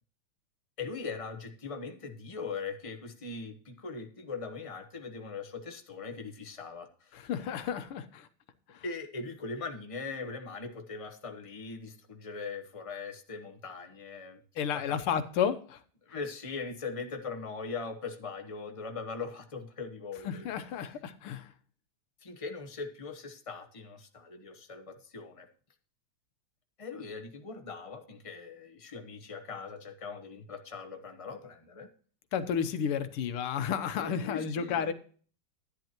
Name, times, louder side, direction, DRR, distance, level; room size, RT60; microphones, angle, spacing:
voice 1, 0.8-7.1 8.8-14.4 14.7-15.0 16.0-20.5 22.2-25.5 26.8-31.9 34.0-34.9, left 4 dB, 30° left, 6 dB, 0.6 m, -40 dB
voice 2, 7.1-8.3 8.7-8.8 14.6-15.8 20.2-21.5 32.3-34.9, left 7 dB, 85° left, 11 dB, 1.8 m, -32 dB
11.0 x 10.5 x 2.9 m, 0.43 s
omnidirectional pair, 2.4 m